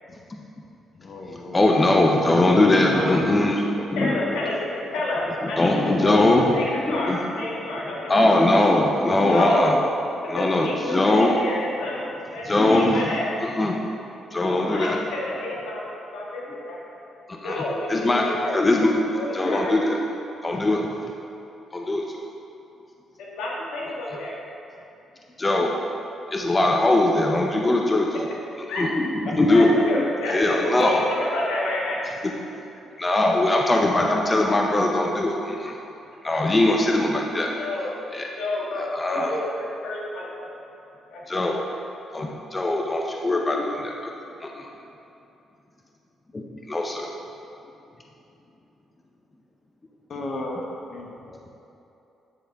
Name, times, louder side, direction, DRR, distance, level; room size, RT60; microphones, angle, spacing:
voice 1, 0.9-1.8 2.9-3.3 50.1-51.4, left 2 dB, 50° left, -1 dB, 1.0 m, -33 dB
voice 2, 1.5-3.5 3.9-4.3 5.4-7.2 7.8-9.8 10.3-11.4 12.4-13.1 13.4-13.9 14.3-15.0 17.3-17.6 17.9-18.2 18.5-20.1 20.4-21.1 21.7-22.2 25.4-25.7 26.3-31.0 32.2-32.3 33.0-35.8 36.2-37.5 38.1-38.3 38.7-39.3 41.3-41.6 42.1-44.1 44.4-44.7 46.3-47.1, left 2 dB, 25° left, 0 dB, 0.6 m, -21 dB
voice 3, 3.9-6.2 6.5-8.5 9.3-9.7 10.2-12.0 12.3-13.3 14.5-16.8 17.4-18.6 19.1-19.7 23.2-24.4 28.7-28.8 29.5-32.1 36.3-36.4 36.7-36.8 37.6-38.0 38.4-39.5 39.8-40.6 41.1-41.2, left 2 dB, 90° left, -4 dB, 1.4 m, -29 dB
9.8 x 4.2 x 3.4 m, 2.9 s
cardioid pair, 90°, 0 cm